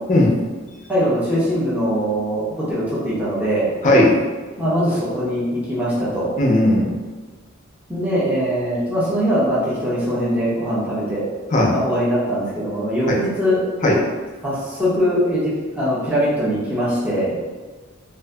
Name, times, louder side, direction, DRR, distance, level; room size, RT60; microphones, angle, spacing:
voice 1, 0.1-0.5 3.8-4.2 6.4-7.0 11.5-11.8 13.1-13.2 13.8-14.0, left 1 dB, 40° left, -2 dB, 0.5 m, -16 dB
voice 2, 0.9-3.6 4.6-6.3 7.9-11.2 11.7-13.6 14.4-17.4, equal, 5° right, -9 dB, 0.7 m, -21 dB
2.6 x 2.5 x 2.2 m, 1.4 s
head